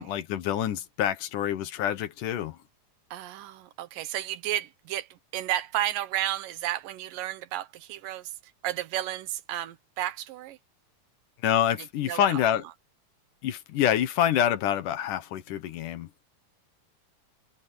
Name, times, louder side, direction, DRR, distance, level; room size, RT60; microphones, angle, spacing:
voice 1, 0.0-2.6 11.4-12.6 13.4-16.1, left 10 dB, 75° left, 2.8 m, -26 dB
voice 2, 3.1-8.3 8.6-10.6 12.0-12.4, right 13 dB, 90° right, 2.7 m, -32 dB
omnidirectional pair, 3.8 m